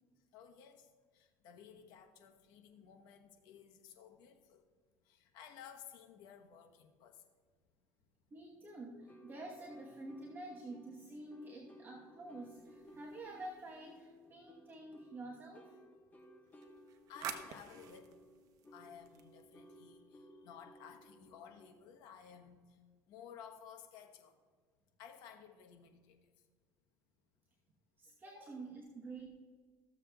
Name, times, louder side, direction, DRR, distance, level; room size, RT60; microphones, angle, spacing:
voice 1, 0.3-4.6 5.0-7.2 16.5-16.7 17.1-18.1 18.7-22.8 23.1-24.4 25.0-26.2 28.3-28.4, left 8 dB, 70° left, 4 dB, 1.0 m, -56 dB
voice 2, 8.3-15.8 28.0-29.4, right 2 dB, 30° right, -1 dB, 1.1 m, -49 dB
sound 1, 9.0-22.0, equal, 20° left, 1.0 m, -59 dB
sound 2, 12.4-14.2 16.5-19.7, right 8 dB, 55° right, 0.8 m, -51 dB
14.5 x 7.3 x 2.3 m, 1.5 s
supercardioid pair, 105°, 7 cm